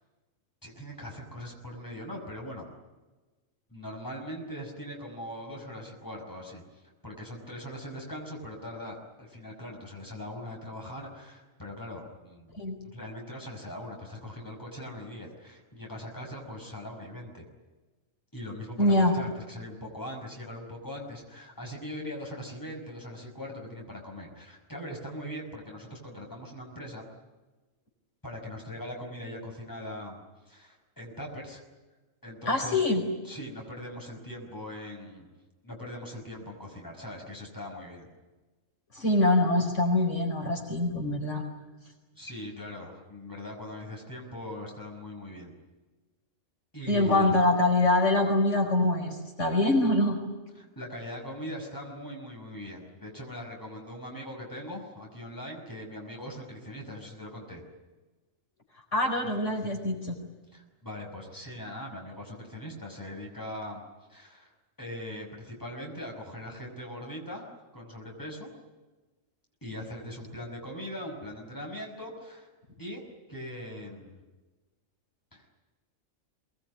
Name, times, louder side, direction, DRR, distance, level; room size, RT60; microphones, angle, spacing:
voice 1, 0.6-2.7 3.7-6.6 7.0-12.6 12.8-17.4 18.3-27.0 28.2-30.2 30.5-31.6 32.2-32.8 33.3-35.3 35.6-38.1 42.1-45.5 46.7-47.4 50.6-57.6 60.5-63.8 64.1-64.5 64.8-67.5 67.7-68.5 69.6-72.5 72.8-74.2 75.3-75.4, left 1 dB, 15° left, 1 dB, 5.7 m, -41 dB
voice 2, 18.8-19.1 32.5-33.0 38.9-41.4 46.9-50.2 58.9-60.2, left 1 dB, 65° left, 1 dB, 5.0 m, -24 dB
24.5 x 20.0 x 9.6 m, 1.2 s
omnidirectional pair, 1.3 m